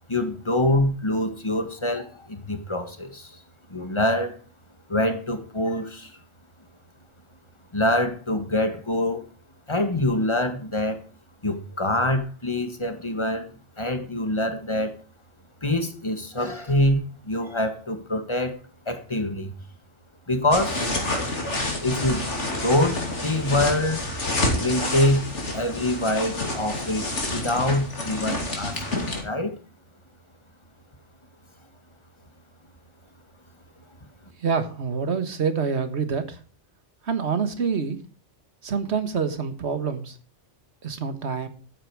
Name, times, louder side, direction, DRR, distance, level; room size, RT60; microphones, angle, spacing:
voice 1, 0.1-3.4 3.7-4.4 4.9-6.2 7.7-9.2 9.7-11.0 11.4-13.5 13.8-15.0 15.6-18.6 18.9-19.6 20.3-20.8 21.8-22.2 22.6-24.1 24.6-25.3 25.5-29.5, left 1 dB, 25° left, 8 dB, 1.6 m, -25 dB
sound 1, 20.5-29.2, left 2 dB, 75° left, 3.2 m, -28 dB
voice 2, 34.4-36.4 37.0-38.0 38.6-40.2 40.8-41.5, right 6 dB, 70° right, 10 dB, 1.7 m, -26 dB
13.5 x 9.0 x 4.7 m, 0.38 s
omnidirectional pair, 1.2 m